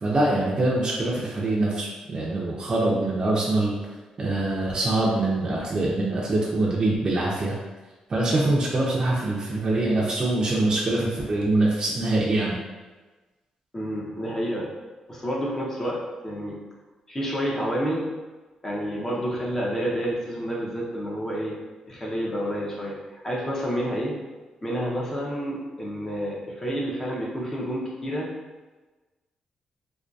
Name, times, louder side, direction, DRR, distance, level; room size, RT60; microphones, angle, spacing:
voice 1, 0.0-3.8 4.2-7.5 8.1-12.6, right 2 dB, 35° right, -4 dB, 0.4 m, -24 dB
voice 2, 13.7-14.7 15.1-16.6 17.1-18.1 18.6-21.6 21.9-23.0 23.2-24.1 24.6-28.3, equal, 20° left, -4 dB, 0.5 m, -29 dB
2.5 x 2.2 x 2.2 m, 1.2 s
cardioid pair, 110°, 2 cm